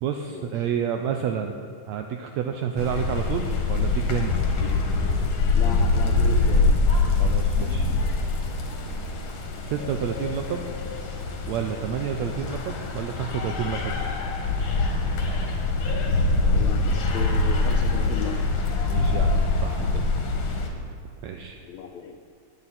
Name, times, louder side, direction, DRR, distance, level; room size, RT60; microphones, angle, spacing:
voice 1, 0.0-1.5 1.9-4.3 7.2-7.9 8.9-9.0 9.6-10.6 11.5-13.9 16.1-16.2 18.9-20.0 21.2-21.6, right 8 dB, 80° right, 5 dB, 1.6 m, -30 dB
sound 1, 2.8-20.7, left 3 dB, 55° left, 2.2 m, -24 dB
voice 2, 5.5-6.7 16.5-18.5 21.6-22.1, left 7 dB, 75° left, 3 dB, 1.7 m, -35 dB
19.5 x 9.0 x 4.3 m, 2.3 s
omnidirectional pair, 3.7 m